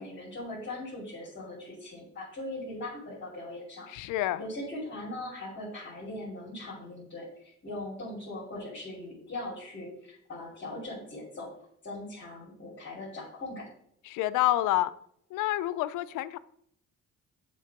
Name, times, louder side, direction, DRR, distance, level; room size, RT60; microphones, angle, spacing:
voice 1, 0.0-11.5 11.8-13.6, left 1 dB, 40° left, 2.7 m, -40 dB
voice 2, 3.9-4.4 14.1-14.9 15.3-16.4, left 14 dB, 90° left, 0.5 m, -28 dB
7.2 x 3.7 x 5.8 m
cardioid pair, 90°, 30 cm